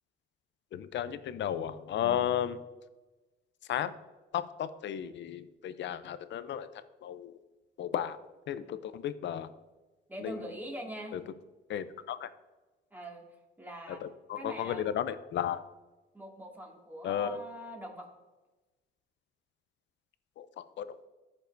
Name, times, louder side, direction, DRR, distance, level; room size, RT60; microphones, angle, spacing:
voice 1, 0.7-2.6 3.7-3.9 4.3-6.7 7.0-7.4 7.8-8.2 8.5-9.5 10.2-10.3 11.1-11.2 11.7-12.3 14.0-15.6 17.0-17.4 20.4-21.1, left 10 dB, 65° left, 13 dB, 0.6 m, -34 dB
voice 2, 10.1-11.2 12.9-13.2 13.6-14.0 14.4-14.8 16.1-18.1, equal, 10° right, -1 dB, 2.2 m, -43 dB
13.5 x 5.3 x 2.6 m, 1.2 s
cardioid pair, 90°, 20 cm